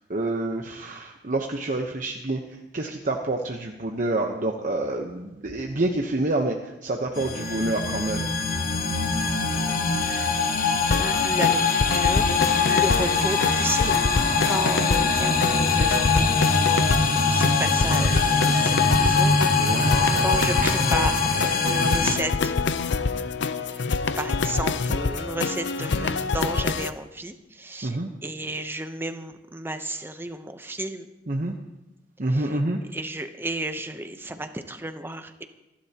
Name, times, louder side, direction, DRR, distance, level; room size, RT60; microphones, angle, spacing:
voice 1, 0.1-2.4 2.7-6.5 6.8-8.2 16.8-17.6 19.6-20.9 27.8-28.1 31.3-31.5 32.2-32.8, right 2 dB, 45° right, 2 dB, 1.0 m, -28 dB
sound 1, 7.1-22.2, left 4 dB, 50° left, 1.2 m, -23 dB
voice 2, 9.4-10.4 11.0-14.0 14.4-16.3 17.2-22.5 23.7-23.9 24.2-31.1 32.3-32.6 32.9-35.4, right 2 dB, 15° right, 8 dB, 0.8 m, -33 dB
sound 2, 10.9-26.9, left 4 dB, 85° left, 0.6 m, -26 dB
27.0 x 11.5 x 2.9 m, 1.0 s
head